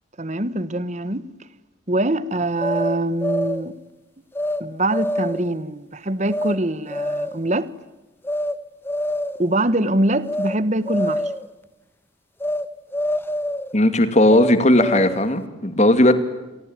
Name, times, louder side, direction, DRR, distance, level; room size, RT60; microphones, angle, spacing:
voice 1, 0.2-1.3 1.9-3.8 4.6-7.7 9.4-11.2, right 1 dB, 35° right, 1.2 m, -23 dB
sound 1, 2.6-3.7 4.3-4.6 4.9-5.5 6.3-6.6 6.9-7.4 8.2-8.6 8.8-9.5 10.2-10.6 10.8-11.5 12.4-12.7 12.9-13.7 14.3-15.3, left 1 dB, 10° left, 1.2 m, -25 dB
voice 2, 13.7-16.1, left 1 dB, 35° left, 2.6 m, -16 dB
29.0 x 23.0 x 9.0 m
head